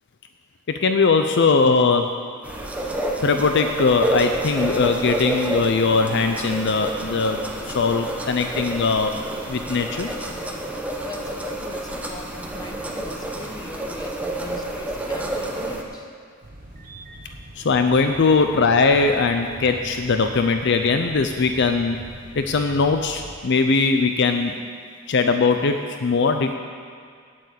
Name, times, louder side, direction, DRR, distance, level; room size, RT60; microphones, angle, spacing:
voice 1, 0.7-2.1 3.2-7.4 7.7-9.1 9.5-10.1 17.6-22.0 22.4-24.5 25.1-26.6, left 4 dB, 60° left, 6 dB, 0.5 m, -20 dB
sound 1, 2.4-15.8, right 1 dB, 5° right, 1.0 m, -29 dB
voice 2, 11.0-16.1, left 1 dB, 20° left, 2 dB, 1.1 m, -40 dB
sound 2, 16.4-23.3, right 1 dB, 45° right, 1.2 m, -42 dB
8.9 x 8.4 x 8.1 m, 2.1 s
head